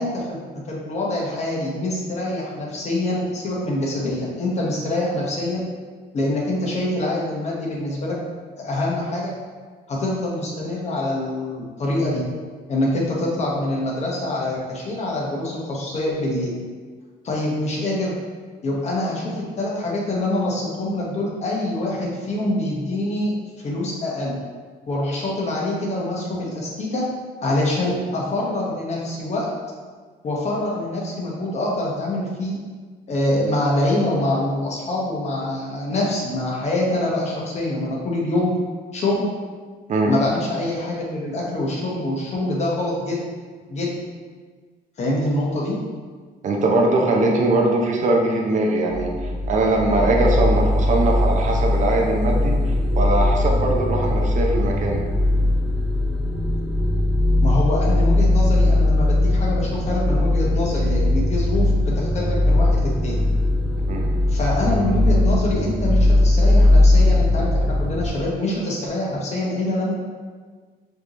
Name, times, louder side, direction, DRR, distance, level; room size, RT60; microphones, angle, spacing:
voice 1, 0.0-5.6 6.1-8.2 8.6-9.3 9.9-12.2 12.7-16.5 17.2-18.1 18.6-23.3 23.6-24.4 24.9-27.0 27.4-29.5 30.2-32.6 33.1-38.5 38.9-39.3 40.1-43.2 43.7-43.9 45.0-45.7 57.4-63.2 64.3-69.9, left 1 dB, 40° left, -3 dB, 1.2 m, -25 dB
voice 2, 46.4-55.0 63.9-64.1, right 2 dB, 45° right, 0 dB, 0.7 m, -21 dB
sound 1, 48.9-68.1, left 1 dB, 5° left, 0.5 m, -19 dB
5.0 x 3.0 x 3.0 m, 1.5 s
cardioid pair, 110°, 17 cm